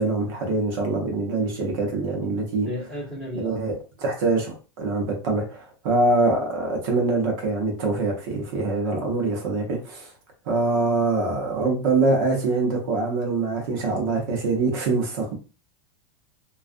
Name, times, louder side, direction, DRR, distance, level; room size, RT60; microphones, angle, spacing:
voice 1, 0.0-2.7 3.3-10.1 10.5-15.3, right 3 dB, 55° right, 0.8 m, -24 dB
voice 2, 2.2-3.6, left 1 dB, 5° left, 1.1 m, -35 dB
2.4 x 2.3 x 2.5 m
supercardioid pair, 150°, 13 cm